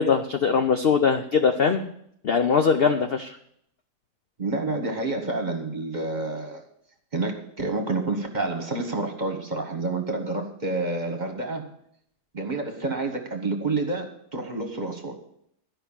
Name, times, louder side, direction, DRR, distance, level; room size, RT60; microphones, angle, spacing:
voice 1, 0.0-1.8 2.2-3.4, left 6 dB, 70° left, 7 dB, 0.5 m, -21 dB
voice 2, 4.4-6.6 7.1-11.7 12.3-15.2, right 3 dB, 30° right, 3 dB, 1.2 m, -29 dB
12.0 x 5.5 x 7.2 m, 0.70 s
omnidirectional pair, 1.8 m